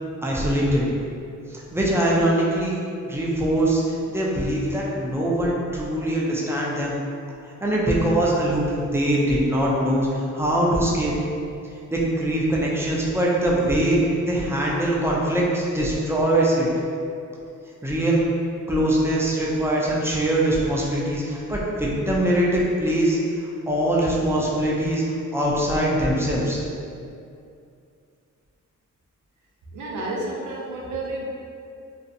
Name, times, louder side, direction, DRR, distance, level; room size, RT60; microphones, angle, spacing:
voice 1, 0.2-0.9 1.5-2.8 3.0-3.8 4.1-6.9 7.6-11.1 11.9-16.7 17.8-18.2 18.7-26.6, right 1 dB, 10° right, -5 dB, 0.4 m, -22 dB
voice 2, 29.7-31.2, right 2 dB, 80° right, -2 dB, 0.5 m, -30 dB
2.5 x 2.1 x 2.6 m, 2.5 s
cardioid pair, 95°, 30 cm